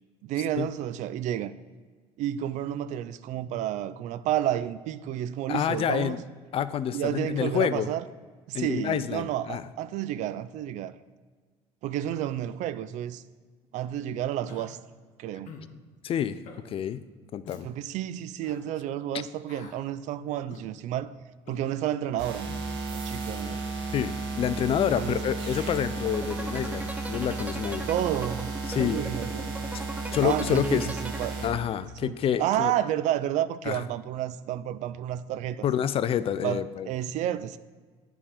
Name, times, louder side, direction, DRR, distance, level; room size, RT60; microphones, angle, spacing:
voice 1, 0.2-1.5 2.2-6.2 6.9-8.0 8.5-10.9 11.8-13.2 13.7-14.8 15.2-15.5 17.6-21.1 21.5-22.5 22.9-23.7 25.0-25.2 27.9-29.6 30.2-31.4 32.0-35.7 36.4-37.6, right 11 dB, 65° right, 15 dB, 0.4 m, -31 dB
voice 2, 5.5-6.2 6.5-7.9 8.5-9.6 16.0-17.0 17.3-17.7 23.9-27.9 28.7-29.0 29.7-29.9 30.1-30.9 31.4-32.7 33.7-33.8 35.6-36.9, left 9 dB, 45° left, 15 dB, 0.4 m, -28 dB
Human voice, 14.5-14.7 15.5-15.7 16.4-16.6 17.4-17.6 18.4-18.6 19.5-19.8 20.5-20.7 21.5-21.7 22.5-22.7 23.4-23.6, left 6 dB, 65° left, 1.0 m, -46 dB
sound 1, 22.2-31.5, right 3 dB, 85° right, 1.6 m, -34 dB
sound 2, 26.0-31.9, right 1 dB, 10° right, 0.5 m, -39 dB
8.5 x 3.6 x 5.0 m, 1.5 s
supercardioid pair, 75°, 14 cm